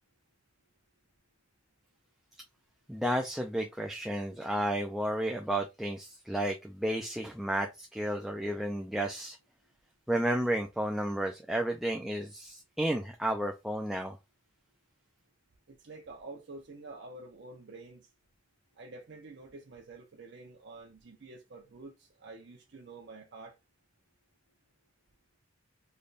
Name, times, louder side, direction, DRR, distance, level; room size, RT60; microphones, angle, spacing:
voice 1, 2.9-9.4 10.1-14.2, right 1 dB, ahead, 0.3 m, -32 dB
voice 2, 15.7-18.1 18.8-23.5, right 3 dB, 60° right, 0.6 m, -48 dB
3.3 x 2.2 x 3.9 m
head